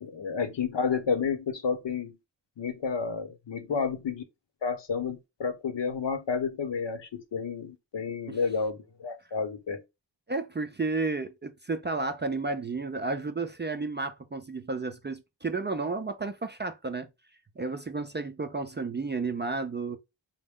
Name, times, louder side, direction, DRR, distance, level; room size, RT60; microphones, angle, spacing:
voice 1, 0.0-2.2 2.6-4.2 4.6-9.8, left 5 dB, 70° left, 0.9 m, -31 dB
voice 2, 10.3-17.1 17.6-20.0, right 3 dB, 25° right, 0.4 m, -32 dB
5.1 x 2.2 x 3.6 m
wide cardioid pair, 160°, 44 cm